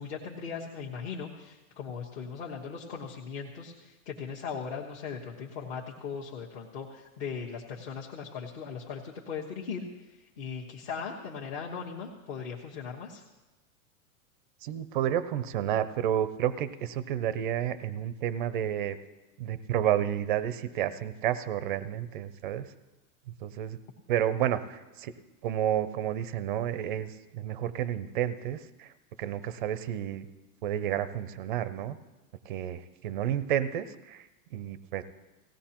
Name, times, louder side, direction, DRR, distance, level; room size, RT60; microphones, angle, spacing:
voice 1, 0.0-9.8 10.4-13.2, left 6 dB, 45° left, -4 dB, 1.3 m, -38 dB
voice 2, 14.6-19.0 19.4-22.7 23.4-23.8 24.1-25.1 25.4-28.9 29.2-30.3 30.6-32.0 32.5-35.0, right 10 dB, 35° right, 14 dB, 0.4 m, -31 dB
18.5 x 15.5 x 2.9 m, 1.1 s
supercardioid pair, 165°, 44 cm